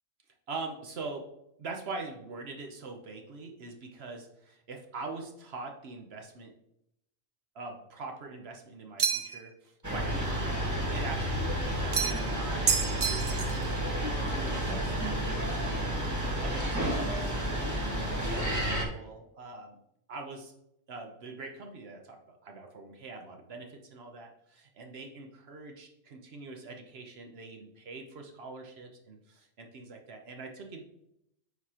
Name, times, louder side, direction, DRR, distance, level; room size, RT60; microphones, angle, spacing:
voice 1, 0.5-1.3 1.6-6.5 7.5-13.9 14.3-17.8 18.3-19.8 20.1-20.5 20.9-30.8, right 3 dB, 65° right, 3 dB, 1.0 m, -43 dB
sound 1, 9.0-9.5 11.9-12.3 12.7-13.6, right 7 dB, 50° right, 0.5 m, -29 dB
sound 2, 9.8-18.8, equal, 15° right, 1.3 m, -31 dB
9.5 x 4.1 x 2.8 m, 0.80 s
omnidirectional pair, 1.2 m